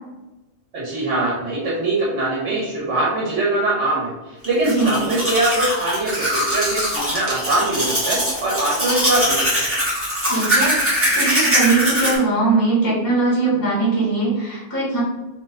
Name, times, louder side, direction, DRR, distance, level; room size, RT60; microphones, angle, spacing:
voice 1, 0.7-9.7, right 2 dB, 70° right, -5 dB, 1.5 m, -22 dB
Domestic sounds home sounds, 4.4-12.2, equal, 10° right, 1.4 m, -21 dB
voice 2, 10.2-15.0, right 3 dB, 15° left, -7 dB, 1.4 m, -20 dB
4.1 x 2.9 x 3.9 m, 1.1 s
omnidirectional pair, 1.2 m